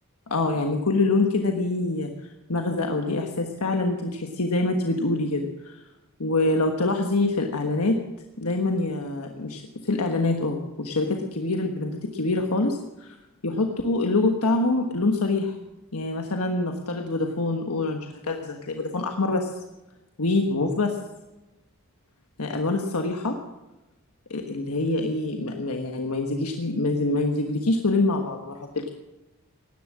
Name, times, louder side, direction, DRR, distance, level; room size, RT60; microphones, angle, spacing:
voice 1, 0.3-2.1 2.5-5.8 6.2-8.0 8.4-13.2 13.4-15.5 15.9-19.5 20.2-21.0 22.4-23.4 24.3-28.9, left 2 dB, 90° left, 3 dB, 1.3 m, -25 dB
17.5 x 11.0 x 7.4 m, 1.0 s
head